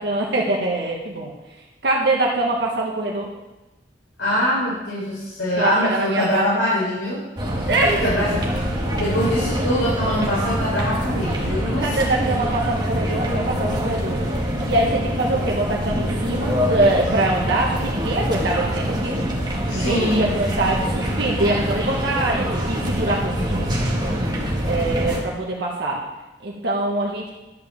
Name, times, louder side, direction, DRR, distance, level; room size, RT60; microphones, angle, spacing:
voice 1, 0.0-1.3 1.8-3.3 5.6-6.5 7.7-8.0 11.8-14.2 14.7-19.2 19.7-23.7 24.7-26.0 26.4-27.3, right 2 dB, 65° right, -2 dB, 1.5 m, -23 dB
voice 2, 4.2-7.2 7.8-8.6 9.0-11.9 19.7-20.3, equal, 80° left, -9 dB, 4.0 m, -23 dB
sound 1, 7.4-25.2, equal, 25° right, 1.6 m, -24 dB
11.5 x 5.2 x 7.2 m, 1.1 s
head